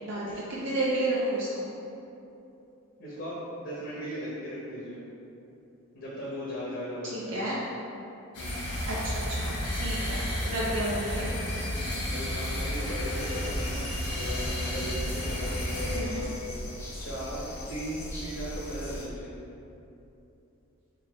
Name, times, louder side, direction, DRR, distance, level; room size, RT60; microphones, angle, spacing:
voice 1, 0.0-1.7 7.1-7.6 8.9-11.3 15.9-16.3, right 1 dB, 55° right, -6 dB, 0.5 m, -31 dB
voice 2, 3.0-5.0 5.9-7.3 8.3-8.7 10.1-10.4 11.7-13.9 14.1-16.4 17.0-19.3, equal, 55° left, -8 dB, 0.8 m, -37 dB
sound 1, 8.3-16.0, equal, 85° left, 1.1 m, -32 dB
sound 2, 13.2-19.1, left 1 dB, 10° left, 0.4 m, -39 dB
3.7 x 2.8 x 4.2 m, 2.8 s
head